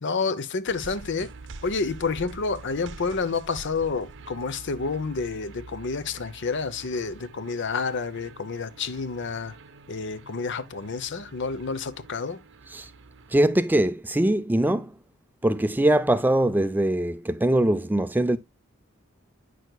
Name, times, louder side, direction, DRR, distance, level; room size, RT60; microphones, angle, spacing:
voice 1, 0.0-1.3 1.6-9.5 9.9-12.4, left 4 dB, 60° left, 0.8 m, -29 dB
sound 1, 0.7-13.4, right 3 dB, 60° right, 0.8 m, -46 dB
voice 2, 13.3-15.0 15.4-18.4, right 1 dB, 10° right, 0.4 m, -22 dB
9.2 x 6.4 x 2.3 m
head